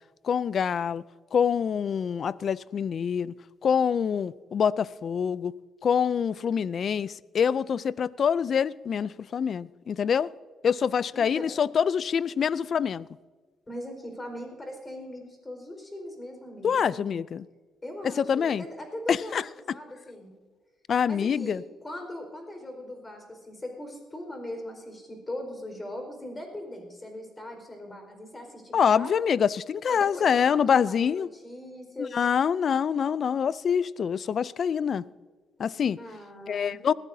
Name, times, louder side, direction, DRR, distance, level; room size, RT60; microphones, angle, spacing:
voice 1, 0.2-1.0 1.3-3.3 3.6-5.5 5.8-10.3 10.6-13.1 16.6-17.4 18.0-18.6 19.1-19.4 20.9-21.6 28.7-31.3 32.1-35.0 35.6-36.0 36.5-36.9, left 7 dB, 55° left, 0.4 m, -25 dB
voice 2, 11.1-11.5 13.7-17.2 17.8-20.3 21.1-29.1 29.9-32.2 36.0-36.8, left 1 dB, 20° left, 4.7 m, -40 dB
20.5 x 15.0 x 2.7 m
cardioid pair, 90°, 0 cm